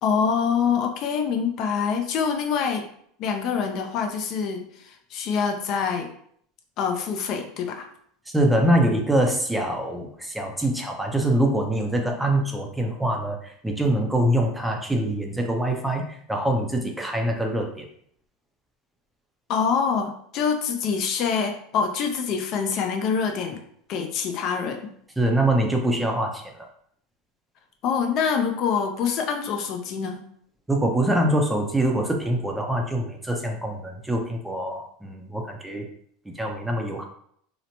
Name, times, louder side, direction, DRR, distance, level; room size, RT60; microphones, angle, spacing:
voice 1, 0.0-2.9 3.2-6.1 6.8-7.9 19.5-23.6 23.9-24.9 27.8-30.2, left 6 dB, 50° left, 3 dB, 0.4 m, -25 dB
voice 2, 8.3-17.9 25.2-26.5 30.7-35.9 36.4-37.1, right 1 dB, 5° right, 2 dB, 0.5 m, -24 dB
2.8 x 2.1 x 2.7 m, 0.65 s
supercardioid pair, 115°, 0 cm